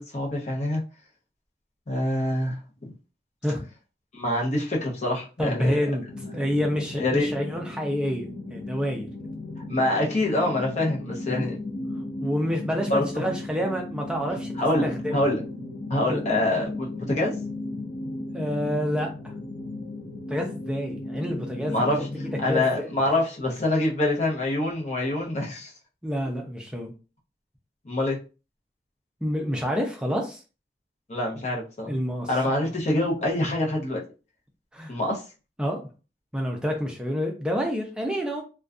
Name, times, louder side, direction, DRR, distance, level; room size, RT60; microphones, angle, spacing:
voice 1, 0.1-0.8 1.9-2.6 4.1-5.8 7.0-7.4 9.7-11.6 12.9-13.2 14.6-15.4 15.9-17.3 21.7-22.1 22.4-25.7 27.8-28.2 31.1-31.9 32.3-34.0 34.9-35.2, left 1 dB, 40° left, -1 dB, 0.7 m, -25 dB
voice 2, 5.4-6.1 6.3-9.1 11.3-11.5 12.2-14.5 14.8-15.3 16.0-16.2 18.3-19.1 20.3-21.9 22.5-22.9 26.0-26.9 29.2-30.4 31.8-32.3 34.7-34.9 35.6-35.9 36.3-38.4, equal, 5° right, 1 dB, 0.4 m, -28 dB
sound 1, 6.1-22.6, left 2 dB, 85° left, 0.5 m, -36 dB
2.5 x 2.2 x 2.4 m, 0.33 s
head